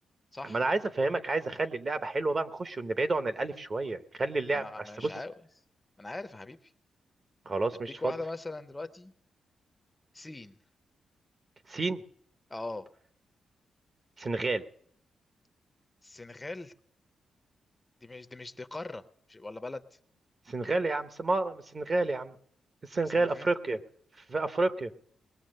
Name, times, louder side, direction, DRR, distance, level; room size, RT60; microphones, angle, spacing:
voice 1, 0.5-4.6 7.5-8.1 11.7-12.0 14.2-14.7 20.5-22.3 22.9-23.8 24.3-24.9, right 2 dB, 35° right, 11 dB, 0.8 m, -30 dB
voice 2, 4.5-5.3 6.0-6.7 8.0-9.1 10.1-10.5 12.5-12.9 16.0-16.7 18.0-19.8 23.1-23.4, left 2 dB, 20° left, 11 dB, 0.6 m, -40 dB
20.0 x 7.1 x 6.4 m, 0.66 s
cardioid pair, 110°, 0 cm